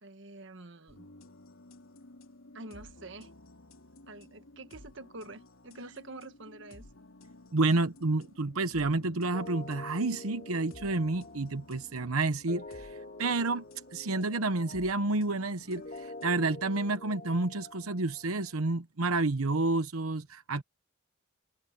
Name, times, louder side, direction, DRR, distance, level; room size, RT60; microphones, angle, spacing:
voice 1, 0.0-1.1 2.5-3.3 4.1-6.9, right 2 dB, 60° right, 1.5 m, -47 dB
sound 1, 0.9-16.3, left 2 dB, 75° left, 2.9 m, -54 dB
voice 2, 7.5-13.6 13.9-20.6, right 3 dB, 90° right, 1.0 m, -30 dB
sound 2, 9.3-18.5, left 2 dB, 40° left, 2.4 m, -47 dB
open air
head